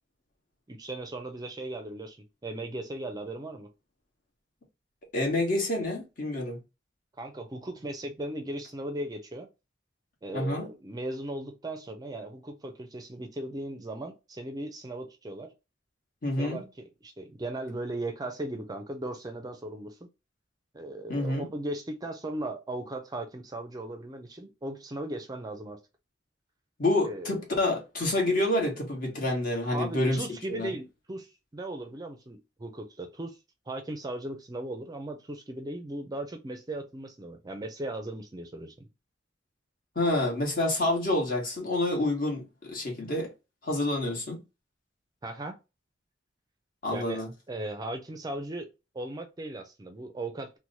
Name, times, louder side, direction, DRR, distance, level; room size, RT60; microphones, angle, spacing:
voice 1, 0.7-2.2 2.4-3.7 7.2-9.5 10.2-15.5 16.4-20.1 20.7-25.8 27.0-27.4 29.7-33.4 33.7-38.9 45.2-45.6 46.9-48.7 48.9-50.6, right 1 dB, 20° right, 0.4 m, -37 dB
voice 2, 5.1-6.6 10.3-10.7 16.2-16.6 21.1-21.5 26.8-30.2 30.5-30.7 39.9-43.3 43.6-44.4 46.8-47.3, left 1 dB, 50° left, 1.2 m, -28 dB
3.0 x 2.1 x 3.9 m
head